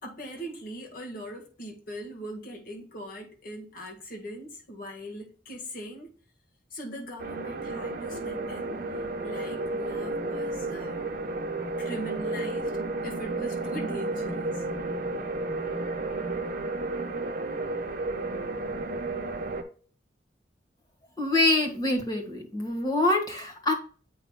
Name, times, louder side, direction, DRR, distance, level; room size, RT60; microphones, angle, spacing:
voice 1, 0.0-6.1 6.7-8.9 9.2-11.1 11.8-12.8 13.0-14.7, right 1 dB, 50° left, 1.7 m, -40 dB
sound 1, 7.2-19.6, right 2 dB, 50° right, 1.0 m, -32 dB
voice 2, 21.2-23.7, left 2 dB, 20° left, 1.6 m, -25 dB
8.0 x 5.4 x 2.3 m
head